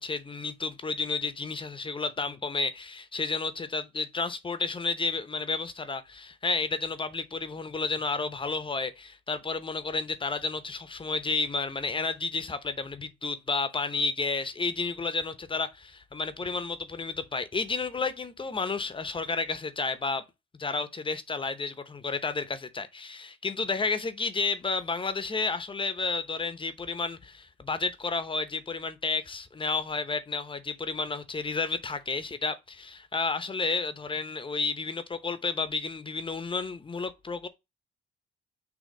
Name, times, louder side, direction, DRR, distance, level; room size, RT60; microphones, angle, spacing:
voice 1, 0.0-20.2 20.6-37.5, left 4 dB, 25° left, 0.9 m, -31 dB
6.5 x 2.9 x 5.2 m
cardioid pair, 90°, 20 cm